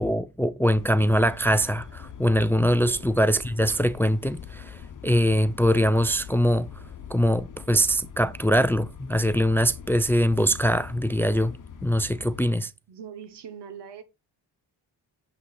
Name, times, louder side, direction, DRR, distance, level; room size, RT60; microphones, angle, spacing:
voice 1, 0.0-6.7 7.1-11.5 11.8-12.7, equal, 5° left, 0.3 m, -23 dB
City ambiance. Trains & birds in Cologne, 0.7-12.4, left 7 dB, 50° left, 1.0 m, -42 dB
voice 2, 12.9-14.0, right 8 dB, 90° right, 1.2 m, -41 dB
7.4 x 5.6 x 4.1 m
cardioid pair, 100°, 41 cm